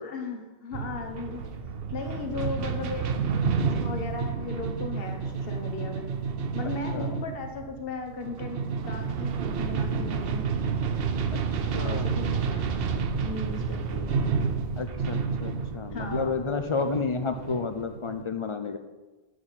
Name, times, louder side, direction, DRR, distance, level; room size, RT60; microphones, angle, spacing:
voice 1, 0.0-1.5 1.9-6.1 6.5-10.4 11.8-14.3 15.9-16.3, left 3 dB, 65° left, 3 dB, 1.3 m, -37 dB
sound 1, 0.7-18.2, right 5 dB, 70° right, 0.8 m, -30 dB
voice 2, 11.6-12.2 14.8-18.8, left 4 dB, 45° left, 8 dB, 0.4 m, -31 dB
7.0 x 6.3 x 5.7 m, 1.2 s
omnidirectional pair, 1.0 m